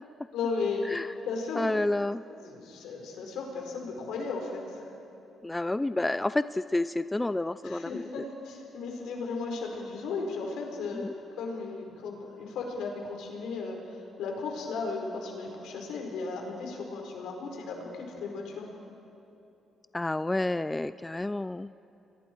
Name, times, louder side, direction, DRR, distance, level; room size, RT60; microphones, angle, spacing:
voice 1, 0.3-0.8 1.3-1.7 2.4-4.8 7.6-18.7, left 4 dB, 85° left, 1 dB, 4.5 m, -35 dB
voice 2, 1.6-2.2 5.4-8.2 10.9-11.1 19.9-21.7, left 2 dB, 15° left, 14 dB, 0.4 m, -30 dB
30.0 x 22.0 x 4.6 m, 2.9 s
cardioid pair, 90°, 0 cm